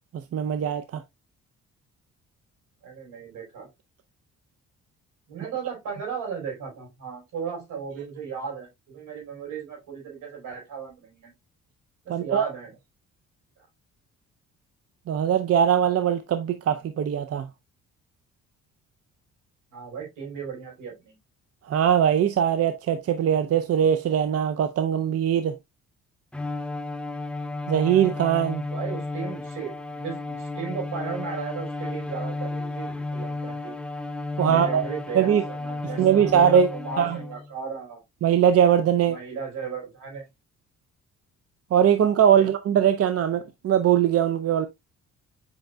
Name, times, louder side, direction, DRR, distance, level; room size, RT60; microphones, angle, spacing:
voice 1, 0.3-1.0 5.4-5.5 12.1-12.4 15.1-17.5 21.7-25.5 27.7-28.6 34.4-34.8 35.1-35.4 36.0-36.7 37.0-37.2 38.2-39.2 41.7-44.7, right 9 dB, 50° right, 0.6 m, -21 dB
voice 2, 2.8-3.7 5.3-11.3 12.0-12.7 19.7-21.2 28.7-33.8 34.4-38.0 39.0-40.3 42.3-42.5, right 6 dB, 85° right, 4.8 m, -36 dB
Bowed string instrument, 26.3-37.5, left 2 dB, 5° left, 0.6 m, -33 dB
7.9 x 5.3 x 2.3 m
cardioid pair, 90°, 30 cm